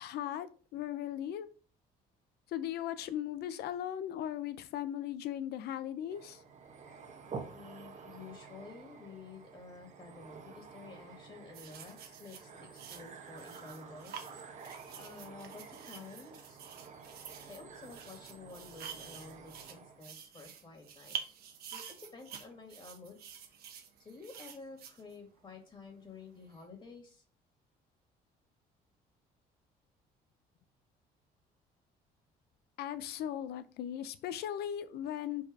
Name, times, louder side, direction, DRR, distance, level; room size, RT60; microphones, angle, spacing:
voice 1, 0.0-1.5 2.5-6.4 32.8-35.4, left 11 dB, 75° left, 13 dB, 0.8 m, -38 dB
sound 1, 6.1-20.1, right 5 dB, 45° right, 1.3 m, -50 dB
voice 2, 7.5-14.1 15.0-16.6 17.5-21.2 21.7-23.2 23.5-23.6 24.0-27.2, left 4 dB, 30° left, 3 dB, 2.4 m, -51 dB
sound 2, 11.5-25.6 26.4-26.6, right 8 dB, 65° right, 1.3 m, -48 dB
5.2 x 4.7 x 4.9 m, 0.37 s
cardioid pair, 110°, 17 cm